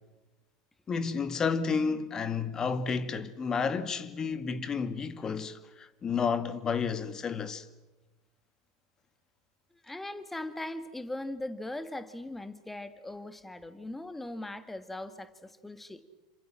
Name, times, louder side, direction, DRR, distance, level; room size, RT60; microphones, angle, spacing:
voice 1, 0.9-7.6, left 5 dB, 25° left, 2.2 m, -31 dB
voice 2, 9.7-16.1, left 1 dB, 10° left, 2.1 m, -40 dB
29.5 x 26.0 x 7.6 m
hypercardioid pair, 90°, 2 cm